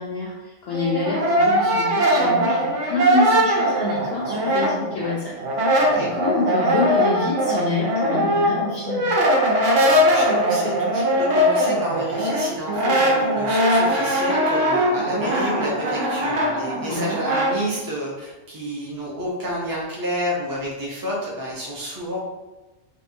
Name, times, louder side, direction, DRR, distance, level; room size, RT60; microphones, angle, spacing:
voice 1, 0.0-5.4 6.0-9.1 16.9-17.1, left 3 dB, 65° left, -4 dB, 0.7 m, -27 dB
Brass instrument, 0.7-5.1 5.4-17.5, equal, 85° right, 1.0 m, -21 dB
voice 2, 5.8-6.1 9.8-22.2, equal, 25° right, -4 dB, 0.4 m, -29 dB
2.7 x 2.3 x 2.6 m, 1.1 s
omnidirectional pair, 1.3 m